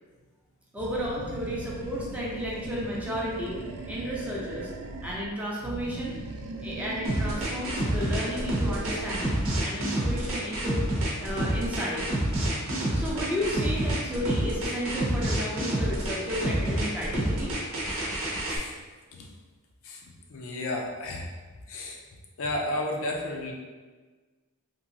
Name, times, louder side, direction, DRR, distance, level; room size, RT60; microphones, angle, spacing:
voice 1, 0.7-3.6 3.9-4.7 5.0-6.1 6.6-10.8 11.2-12.0 12.9-17.5, equal, 5° right, -5 dB, 0.5 m, -33 dB
Animal, 0.8-5.3 5.6-9.5, right 2 dB, 90° right, 0.4 m, -39 dB
sound 1, 7.0-18.6, right 1 dB, 65° right, 0.7 m, -28 dB
voice 2, 20.3-21.3 21.7-22.0 22.4-23.5, left 1 dB, 60° left, 0 dB, 0.5 m, -32 dB
2.9 x 2.6 x 2.6 m, 1.4 s
head